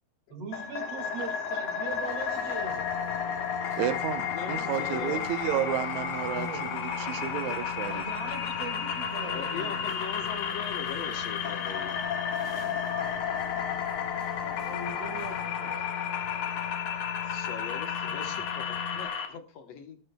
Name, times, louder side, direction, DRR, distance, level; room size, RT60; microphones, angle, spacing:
voice 1, 0.3-2.9 6.2-6.7 7.9-9.9 14.6-15.9 18.1-18.2, right 5 dB, 55° right, 5 dB, 3.1 m, -41 dB
sound 1, 0.5-19.3, left 7 dB, 80° left, 3.0 m, -32 dB
sound 2, 1.9-15.5, right 1 dB, 10° right, 2.0 m, -49 dB
sound 3, 2.6-19.1, left 9 dB, 25° left, 3.1 m, -42 dB
voice 2, 3.8-8.0, right 11 dB, 75° right, 10 dB, 2.2 m, -32 dB
voice 3, 4.3-5.3 9.2-11.9 17.1-20.0, left 7 dB, 65° left, 7 dB, 2.2 m, -40 dB
18.5 x 12.5 x 2.2 m, 0.32 s
omnidirectional pair, 3.4 m